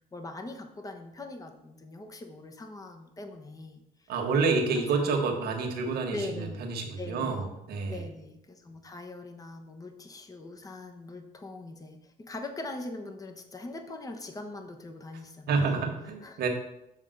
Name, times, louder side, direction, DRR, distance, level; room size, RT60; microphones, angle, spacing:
voice 1, 0.1-4.1 4.7-5.1 6.1-6.6 7.0-7.5 7.9-15.8 16.2-16.4, left 2 dB, 20° left, 5 dB, 1.0 m, -41 dB
voice 2, 4.1-8.0 15.5-16.5, right 4 dB, 70° right, 2 dB, 1.7 m, -28 dB
7.4 x 3.6 x 6.5 m, 0.87 s
cardioid pair, 110°, 17 cm